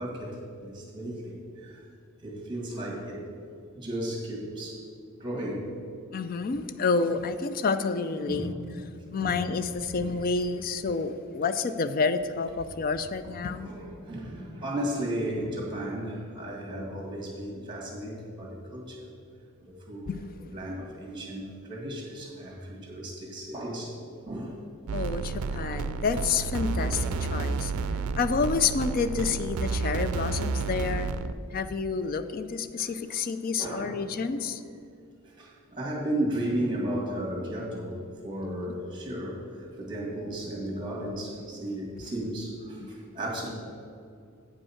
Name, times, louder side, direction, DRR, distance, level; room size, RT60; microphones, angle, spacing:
voice 1, 0.0-1.8 2.2-3.3 3.8-4.8 5.2-5.7 8.3-8.5 9.2-9.4 9.9-10.1 13.5-19.1 19.6-20.2 20.5-24.0 24.3-24.6 25.1-25.2 25.7-25.8 26.8-27.0 32.8-32.9 33.6-34.1 35.4-38.0 38.2-43.5, right 1 dB, 20° right, -2 dB, 1.9 m, -34 dB
voice 2, 6.1-8.5 9.1-13.7 20.1-20.2 24.9-27.7 28.1-31.1 31.5-34.6 42.8-42.9, left 4 dB, 40° left, 12 dB, 0.4 m, -29 dB
sound 1, 24.9-31.3, right 4 dB, 90° right, 0.4 m, -31 dB
8.5 x 5.4 x 5.7 m, 2.4 s
head